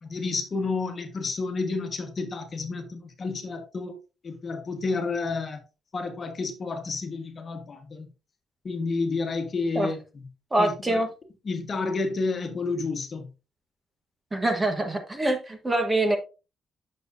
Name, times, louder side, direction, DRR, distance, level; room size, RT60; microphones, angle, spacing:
voice 1, 0.0-4.0 4.2-5.6 5.9-8.1 8.6-10.0 10.6-11.0 11.4-13.3, left 3 dB, 35° left, 1.5 m, -30 dB
voice 2, 10.5-11.1 14.3-16.2, right 1 dB, 15° right, 1.3 m, -24 dB
9.0 x 6.5 x 2.6 m
cardioid pair, 130°, 0 cm